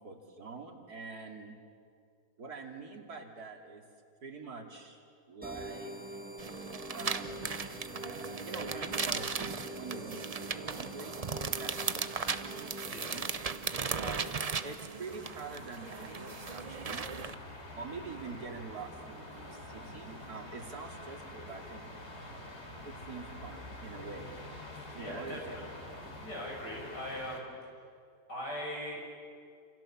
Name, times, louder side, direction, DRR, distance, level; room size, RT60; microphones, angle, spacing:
voice 1, 0.0-1.6 2.4-3.8 4.2-5.0 5.3-6.2 6.9-7.6 8.4-12.8 13.1-13.3 14.0-14.3 14.6-17.1 17.8-21.8 22.8-24.3 24.9-25.7, right 4 dB, 65° right, 2 dB, 3.2 m, -45 dB
sound 1, 5.4-14.8, equal, 5° right, 1.5 m, -46 dB
sound 2, 6.4-17.3, right 5 dB, 45° right, 0.5 m, -37 dB
sound 3, 15.1-27.4, left 1 dB, 40° left, 3.8 m, -47 dB
voice 2, 25.0-25.9 26.2-27.5 28.3-29.1, equal, 85° left, -2 dB, 8.4 m, -40 dB
29.0 x 28.0 x 7.3 m, 2.3 s
omnidirectional pair, 1.8 m